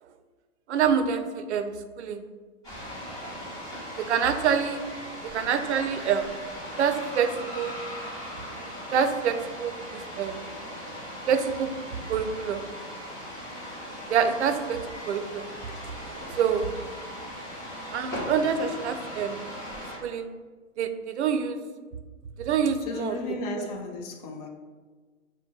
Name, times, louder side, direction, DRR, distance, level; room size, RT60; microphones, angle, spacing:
voice 1, 0.7-2.2 4.0-4.8 5.3-6.3 6.8-7.7 8.9-10.4 11.3-11.7 12.1-12.6 14.1-14.8 15.1-15.5 16.4-16.7 17.9-19.5 20.0-20.3 20.8-21.6 22.4-23.1 23.6-23.7, right 7 dB, 55° right, 9 dB, 0.5 m, -26 dB
sound 1, 2.6-20.0, equal, 10° left, 1.1 m, -38 dB
voice 2, 22.9-24.5, left 2 dB, 30° left, 0 dB, 0.6 m, -34 dB
4.2 x 2.2 x 4.5 m, 1.4 s
hypercardioid pair, 135°, 40 cm